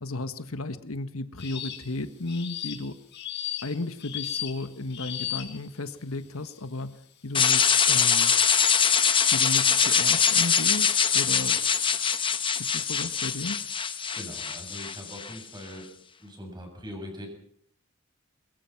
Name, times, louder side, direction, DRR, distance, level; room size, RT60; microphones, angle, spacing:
voice 1, 0.0-3.0 3.6-8.3 9.3-11.6 12.6-13.6, left 2 dB, 90° left, 11 dB, 1.4 m, -34 dB
sound 1, 1.4-1.9 2.3-5.8 6.4-6.8 7.4-10.9 11.4-12.2, left 11 dB, 55° left, 4.6 m, -38 dB
sound 2, 7.3-15.4, left 7 dB, 25° left, 1.1 m, -23 dB
voice 2, 14.1-15.9 16.2-17.3, equal, 20° right, 3 dB, 7.5 m, -41 dB
22.5 x 22.5 x 6.0 m, 0.63 s
head